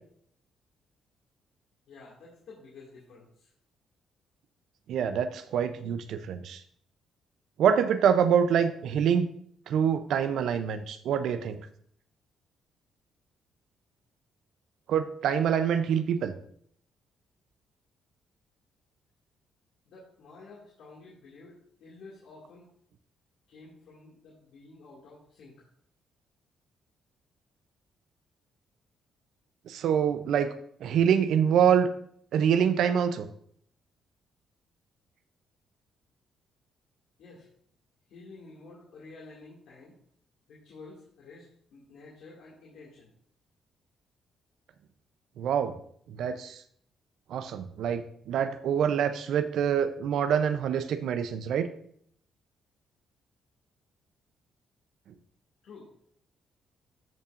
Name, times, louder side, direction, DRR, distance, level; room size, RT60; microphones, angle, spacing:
voice 1, 1.9-3.5 19.9-22.6 23.5-25.5 37.2-37.5 38.1-39.9 40.5-41.4 41.7-43.1 55.6-55.9, left 3 dB, 75° left, -5 dB, 2.2 m, -50 dB
voice 2, 4.9-6.6 7.6-9.3 9.7-11.6 14.9-16.3 29.7-30.5 30.8-31.9 32.3-33.3 45.4-45.7 46.1-46.6 47.3-51.7, right 8 dB, 75° right, 10 dB, 0.6 m, -25 dB
13.5 x 5.5 x 2.6 m, 0.65 s
cardioid pair, 90°, 0 cm